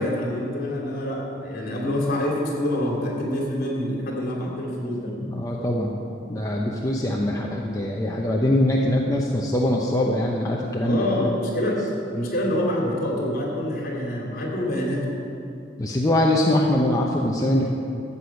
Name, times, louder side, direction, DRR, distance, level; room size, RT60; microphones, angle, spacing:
voice 1, 0.0-5.1 10.8-11.8 12.1-15.1, left 1 dB, 50° left, -2 dB, 2.8 m, -26 dB
voice 2, 5.2-6.0 6.3-11.1 15.8-17.7, left 1 dB, 20° left, -2 dB, 0.8 m, -23 dB
14.0 x 8.1 x 5.9 m, 2.6 s
head